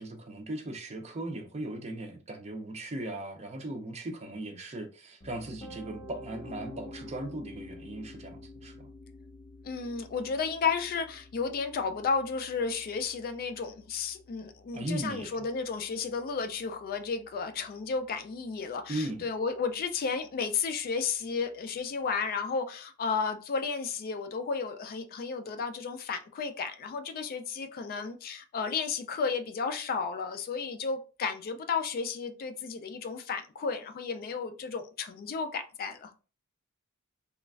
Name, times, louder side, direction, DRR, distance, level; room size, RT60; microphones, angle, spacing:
voice 1, 0.0-8.9 14.7-15.3 18.9-19.3, right 1 dB, 30° right, 0.5 m, -38 dB
Piano, 5.2-17.1, left 2 dB, 25° left, 0.7 m, -50 dB
voice 2, 9.6-36.1, left 5 dB, 45° left, 0.3 m, -33 dB
3.0 x 2.3 x 2.3 m
head